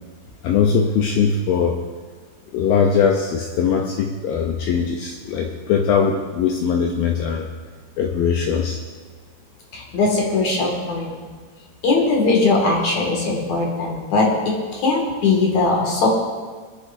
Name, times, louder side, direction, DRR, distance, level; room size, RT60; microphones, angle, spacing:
voice 1, 0.4-1.8 2.5-7.5 8.0-8.8, left 6 dB, 85° left, 1 dB, 2.1 m, -20 dB
voice 2, 9.7-11.1 11.8-16.1, left 3 dB, 50° left, -2 dB, 2.8 m, -20 dB
26.5 x 9.8 x 2.7 m, 1.5 s
omnidirectional pair, 5.1 m